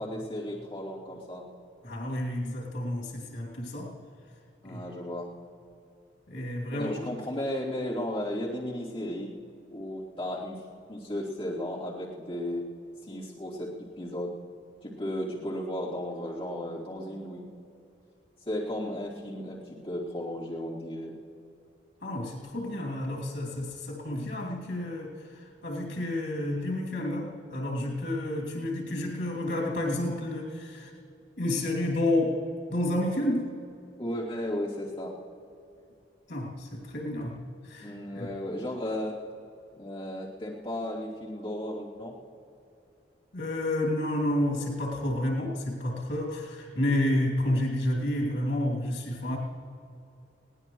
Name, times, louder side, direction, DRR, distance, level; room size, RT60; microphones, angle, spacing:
voice 1, 0.0-1.4 4.6-5.3 6.7-9.3 9.7-10.6 10.9-12.7 13.0-14.3 14.8-17.4 18.4-21.1 34.0-35.1 37.8-39.2 39.7-42.2, left 1 dB, 30° left, -8 dB, 3.1 m, -34 dB
voice 2, 1.8-3.9 4.6-4.8 6.3-6.9 22.0-30.9 31.4-33.5 36.3-37.4 37.6-38.3 43.3-49.4, left 1 dB, 85° left, -3 dB, 2.9 m, -30 dB
22.0 x 17.5 x 3.2 m, 2.7 s
head